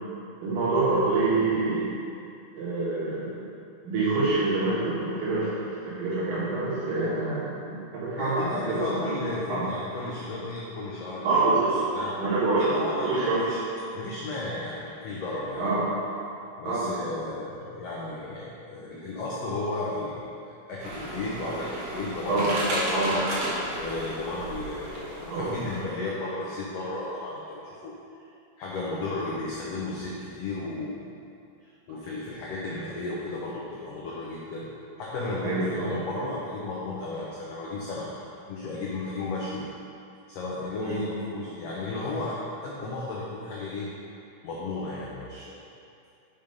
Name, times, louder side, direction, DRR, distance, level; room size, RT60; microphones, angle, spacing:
voice 1, 0.4-1.9 2.5-3.4 3.8-9.2 9.5-9.7 11.2-11.8 12.2-12.8 13.0-13.4 15.6-15.9 16.7-17.0 22.3-22.5 22.9-23.1 25.3-25.5 35.4-35.9 36.2-36.3 40.8-41.0, right 3 dB, 75° right, -9 dB, 2.9 m, -26 dB
voice 2, 8.2-11.5 11.9-12.1 12.7-13.6 13.9-15.6 16.6-20.2 20.7-23.2 23.5-27.9 28.6-31.0 31.6-34.6 35.0-38.1 38.5-39.7 40.3-43.9 44.4-45.6, left 2 dB, 80° left, -5 dB, 1.4 m, -34 dB
sound 1, 20.8-25.8, right 1 dB, 60° right, 2.3 m, -33 dB
6.1 x 5.3 x 5.2 m, 2.6 s
omnidirectional pair, 4.0 m